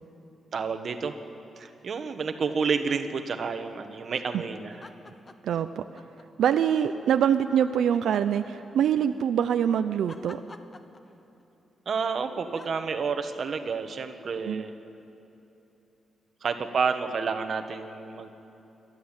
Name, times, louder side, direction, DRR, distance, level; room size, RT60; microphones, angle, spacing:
voice 1, 0.5-1.1 1.6-4.8 11.9-14.7 16.4-18.3, right 5 dB, 45° right, 7 dB, 1.2 m, -30 dB
sound 1, 4.7-5.6 5.9-6.9 7.9-9.1 10.1-11.4 12.5-12.8, left 3 dB, 20° left, 0.8 m, -49 dB
voice 2, 5.4-6.0 6.4-10.4 14.5-14.6, right 9 dB, 80° right, 9 dB, 0.6 m, -24 dB
27.5 x 12.5 x 9.0 m, 3.0 s
wide cardioid pair, 175°, 0 cm